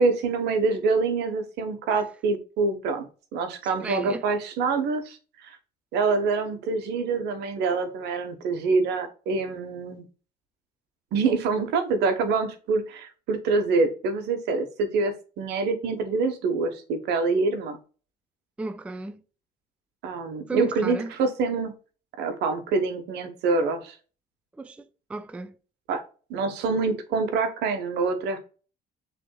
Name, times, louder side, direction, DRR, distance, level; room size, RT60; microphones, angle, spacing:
voice 1, 0.0-5.6 5.9-10.0 11.1-17.8 20.0-21.7 22.2-23.9 25.9-26.0 26.3-28.4, right 4 dB, 80° right, 1.1 m, -26 dB
voice 2, 3.8-4.3 18.6-19.2 20.5-21.1 24.6-25.6, right 3 dB, 5° right, 0.3 m, -34 dB
6.1 x 3.4 x 2.3 m
cardioid pair, 110°, 17 cm